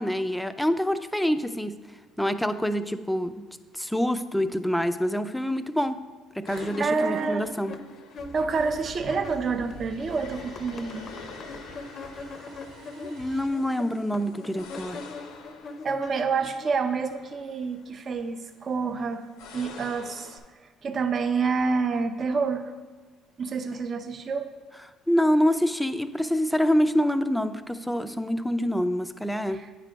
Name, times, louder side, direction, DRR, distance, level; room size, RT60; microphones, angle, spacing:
voice 1, 0.0-1.7 2.2-3.5 3.7-6.0 6.4-7.7 13.0-15.0 25.1-29.6, equal, 5° left, 10 dB, 0.4 m, -26 dB
sound 1, 6.5-20.4, left 5 dB, 85° left, 0.7 m, -48 dB
voice 2, 6.5-7.5 8.3-11.1 15.8-19.3 19.5-20.4 20.8-22.7 23.4-24.5 29.5-29.7, right 4 dB, 45° right, 8 dB, 0.6 m, -28 dB
sound 2, 6.6-9.7 10.0-16.7, left 3 dB, 50° left, 0.6 m, -41 dB
sound 3, 8.2-13.5, right 3 dB, 60° right, 0.9 m, -47 dB
8.9 x 3.3 x 5.0 m, 1.3 s
supercardioid pair, 85°, 0 cm